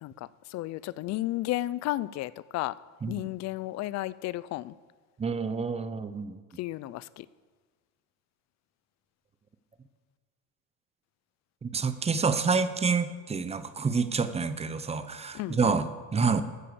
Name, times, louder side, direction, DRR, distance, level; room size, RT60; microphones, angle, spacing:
voice 1, 0.0-2.7 3.1-4.7 6.6-7.3 15.3-15.8, left 16 dB, 45° left, 19 dB, 0.5 m, -33 dB
voice 2, 5.2-6.4 11.6-16.4, right 5 dB, 15° right, 12 dB, 0.7 m, -28 dB
13.0 x 7.5 x 6.8 m, 1.4 s
supercardioid pair, 115°, 39 cm